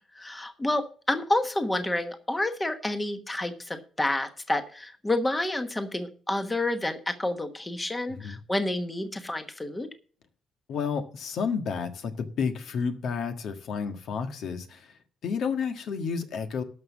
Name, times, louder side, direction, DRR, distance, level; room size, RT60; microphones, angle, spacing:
voice 1, 0.1-9.9, left 1 dB, 15° left, 1.1 m, -29 dB
voice 2, 8.1-8.4 10.7-14.9 15.2-16.6, left 6 dB, 65° left, 1.5 m, -31 dB
12.5 x 5.7 x 7.1 m
cardioid pair, 140°, 0 cm